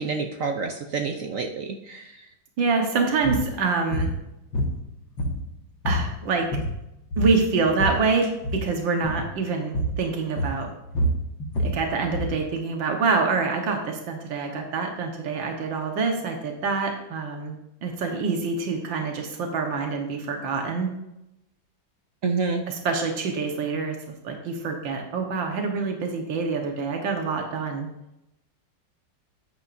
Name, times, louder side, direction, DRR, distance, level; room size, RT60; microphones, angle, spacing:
voice 1, 0.0-2.1 22.2-22.7, right 4 dB, 60° right, 4 dB, 0.9 m, -28 dB
voice 2, 2.6-4.1 5.9-6.5 7.2-10.7 11.6-17.6 17.8-20.9 22.7-27.9, right 4 dB, 80° right, 2 dB, 2.0 m, -26 dB
sound 1, 3.2-3.5 3.9-4.1 4.5-5.5 5.8-6.1 6.4-6.8 7.1-8.0 8.4-8.7 9.0-9.3 9.7-10.0 10.4-12.4, equal, 90° left, 2.7 m, -26 dB
13.0 x 9.3 x 2.6 m, 0.87 s
omnidirectional pair, 2.0 m